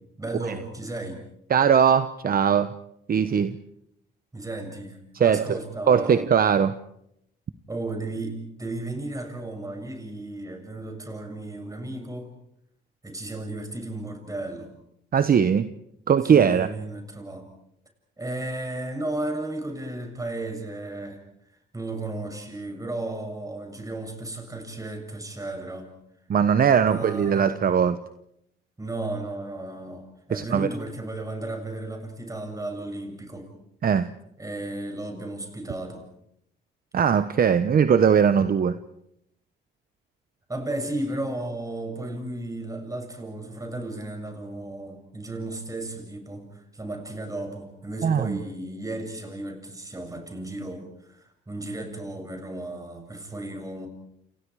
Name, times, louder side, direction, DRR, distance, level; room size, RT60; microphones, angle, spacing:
voice 1, 0.2-1.2 4.3-6.3 7.7-12.3 13.0-14.7 16.2-17.5 18.2-21.2 21.7-25.9 26.8-27.5 28.8-33.5 34.4-36.0 40.5-53.9, right 2 dB, 15° right, 5 dB, 7.3 m, -34 dB
voice 2, 1.5-2.7 3.1-3.6 5.1-5.6 5.9-6.7 15.1-15.7 16.1-16.7 26.3-28.0 30.3-30.7 33.8-34.1 36.9-38.8 48.0-48.4, right 7 dB, 45° right, 11 dB, 1.1 m, -20 dB
29.0 x 29.0 x 4.9 m, 0.75 s
cardioid pair, 90°, 20 cm